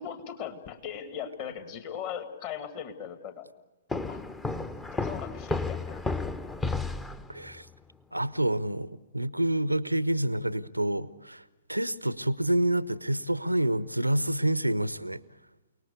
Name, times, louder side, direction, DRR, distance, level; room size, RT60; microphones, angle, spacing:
voice 1, 0.0-3.5 4.1-4.2 4.9-6.0, left 8 dB, 35° left, 2.1 m, -39 dB
sound 1, 3.9-7.6, left 3 dB, 10° left, 0.8 m, -32 dB
voice 2, 7.3-7.7 8.1-11.4 11.7-15.2, right 1 dB, 85° right, 0.8 m, -28 dB
29.0 x 19.0 x 8.3 m
figure-of-eight pair, 115°, 0 cm